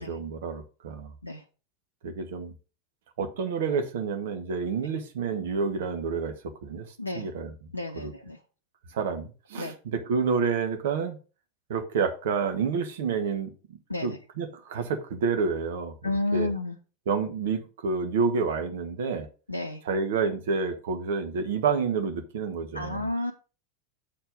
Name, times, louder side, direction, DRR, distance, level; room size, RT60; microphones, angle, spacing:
voice 1, 0.0-1.1 2.0-2.5 3.2-6.9 7.1-7.5 8.0-8.1 8.9-11.2 11.7-13.5 14.0-15.9 16.3-16.5 17.1-19.3 19.8-23.1, right 5 dB, 60° right, 1.2 m, -29 dB
voice 2, 7.0-7.3 7.7-8.4 9.6-9.8 13.9-14.2 16.0-16.8 19.5-19.8 22.7-23.3, left 2 dB, 85° left, 0.6 m, -31 dB
7.6 x 4.5 x 5.2 m
figure-of-eight pair, 85°, 0 cm